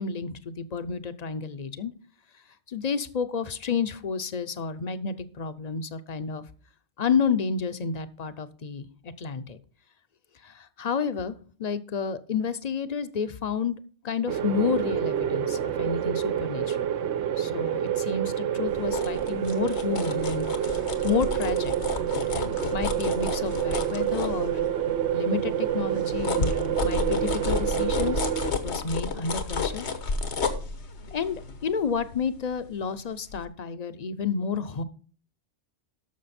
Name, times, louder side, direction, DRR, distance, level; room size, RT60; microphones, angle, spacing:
voice 1, 0.0-1.9 2.7-6.4 7.0-9.6 10.4-11.3 11.6-13.8 14.0-16.9 17.4-20.8 21.0-21.7 22.3-24.6 25.1-29.9 31.1-34.8, left 5 dB, 45° left, 12 dB, 0.7 m, -30 dB
sound 1, 14.3-28.5, right 10 dB, 75° right, 0.9 m, -28 dB
sound 2, 18.7-25.0 25.4-32.9 33.3-33.4, left 4 dB, 80° left, 1.5 m, -32 dB
13.0 x 6.1 x 4.2 m, 0.43 s
omnidirectional pair, 1.1 m